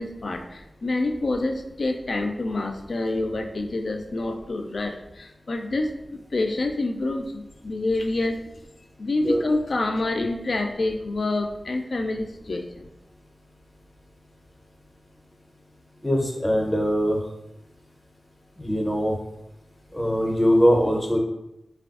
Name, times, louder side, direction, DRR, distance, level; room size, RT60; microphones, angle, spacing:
voice 1, 0.0-8.4 9.0-12.9, left 2 dB, 75° left, 4 dB, 0.3 m, -27 dB
voice 2, 16.0-17.2 18.6-19.2 19.9-21.2, equal, 15° left, 1 dB, 0.5 m, -21 dB
3.3 x 2.3 x 2.4 m, 0.88 s
wide cardioid pair, 65°, 0 cm